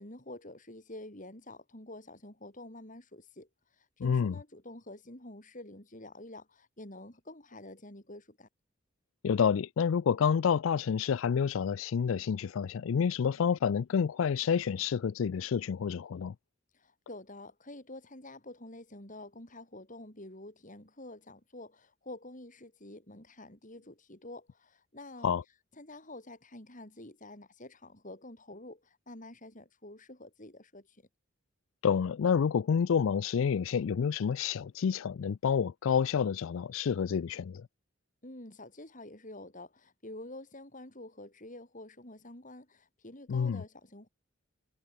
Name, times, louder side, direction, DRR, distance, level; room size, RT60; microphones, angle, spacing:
voice 1, 0.0-3.5 3.8-8.5 16.7-25.3 25.8-31.1 38.2-44.1, left 1 dB, 40° left, 5.8 m, -48 dB
voice 2, 4.0-4.3 9.2-16.3 25.2-25.4 31.8-37.7 43.3-43.6, left 7 dB, 75° left, 0.4 m, -28 dB
head